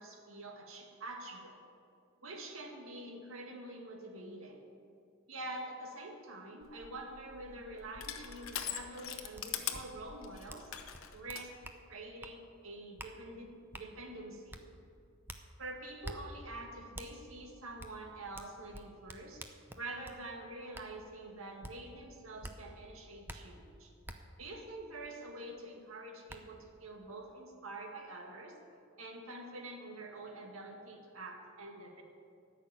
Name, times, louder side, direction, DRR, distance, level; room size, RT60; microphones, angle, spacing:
voice 1, 0.0-1.6 2.2-4.6 5.3-10.7 11.1-11.5 11.9-14.6 15.6-19.4 19.8-23.9 24.4-28.6 29.0-32.0, right 2 dB, 85° right, 2 dB, 2.0 m, -46 dB
Crushing, 6.6-11.5, left 9 dB, 85° left, 0.9 m, -42 dB
sound 1, 9.3-9.4 9.7-9.8 10.5-10.7 10.9-11.8 12.2-12.4 13.0-13.1 13.7-13.9 14.5-14.6 15.3-15.4 16.0-16.2 16.9-17.1 17.8-17.9 18.3-20.2 20.7-20.9 21.6-21.7 22.4-22.6 23.3-23.4 24.0-24.2 25.7-25.8 26.3-26.4, right 1 dB, 10° right, 0.7 m, -46 dB
13.5 x 6.4 x 9.1 m, 2.3 s
head